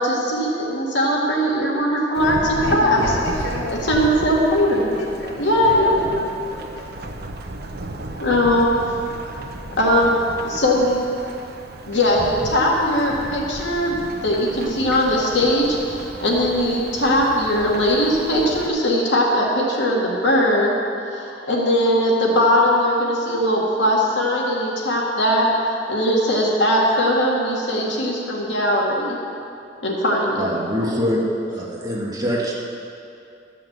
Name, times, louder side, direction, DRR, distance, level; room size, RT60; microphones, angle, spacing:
voice 1, 0.0-3.0 3.9-5.0 5.4-6.0 8.2-8.7 9.7-10.1 10.4-11.0 11.8-20.7 21.1-29.2 29.8-30.5, equal, 80° left, -3 dB, 1.9 m, -20 dB
Thunderstorm / Rain, 2.1-18.7, right 1 dB, 60° right, 0.9 m, -34 dB
voice 2, 2.6-3.8 4.5-6.9 9.9-10.8 21.3-21.5, equal, 65° left, -6 dB, 3.3 m, -33 dB
voice 3, 30.4-31.2 31.5-32.5, equal, 20° right, -4 dB, 1.6 m, -24 dB
13.0 x 5.7 x 8.0 m, 2.6 s
head